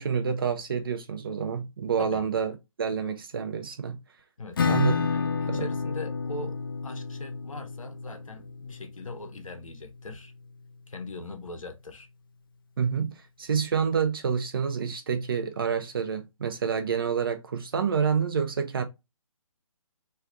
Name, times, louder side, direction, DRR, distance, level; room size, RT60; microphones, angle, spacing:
voice 1, 0.0-2.5 2.8-4.0 4.7-5.0 5.5-5.6 12.8-13.1 13.4-18.8, right 6 dB, 40° right, 0.7 m, -28 dB
Acoustic guitar / Strum, 4.6-10.0, left 5 dB, 40° left, 0.4 m, -31 dB
voice 2, 5.1-10.3 10.9-12.1, left 2 dB, 70° left, 0.8 m, -40 dB
3.3 x 2.3 x 3.7 m
figure-of-eight pair, 145°, 18 cm